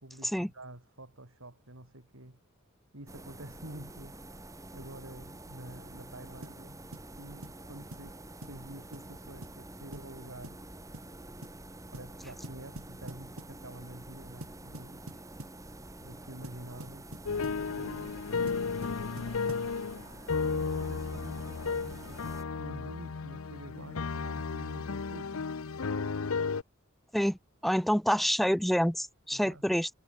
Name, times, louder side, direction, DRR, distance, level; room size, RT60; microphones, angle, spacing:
voice 1, 0.0-2.4 2.9-6.8 7.2-10.6 11.9-15.0 16.0-17.1 17.4-18.3 19.3-19.7 20.4-25.5 25.9-26.2 29.3-29.7, right 1 dB, 70° right, 4.2 m, -48 dB
sound 1, 3.1-22.4, right 1 dB, 15° right, 2.1 m, -48 dB
sound 2, 6.4-6.6 6.9-7.1 7.4-7.6 7.9-8.1 8.4-8.6 8.9-9.1 9.4-9.6 9.9-10.1 10.4-10.7 10.9-11.1 11.4-11.6 11.9-12.1 12.4-13.6 14.4-15.6 16.4-17.6 18.5-19.7, right 1 dB, 85° right, 4.2 m, -46 dB
sound 3, 17.3-26.6, left 5 dB, 85° left, 0.7 m, -34 dB
voice 2, 27.6-29.9, equal, ahead, 0.5 m, -27 dB
head